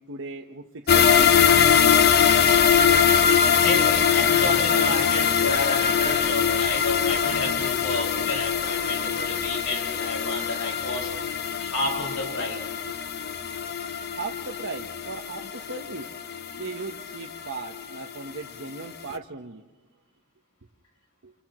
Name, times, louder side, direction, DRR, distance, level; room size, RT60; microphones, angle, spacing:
voice 1, 0.0-1.3 14.1-16.1 16.6-19.6 21.2-21.3, right 3 dB, 65° right, 2 dB, 1.1 m, -37 dB
sound 1, 0.9-18.0 18.3-18.4 18.8-18.9, left 7 dB, 50° left, 0.6 m, -22 dB
voice 2, 3.6-11.2 11.6-12.8, left 2 dB, 70° left, 0 dB, 5.8 m, -31 dB
29.5 x 29.0 x 3.1 m, 1.3 s
head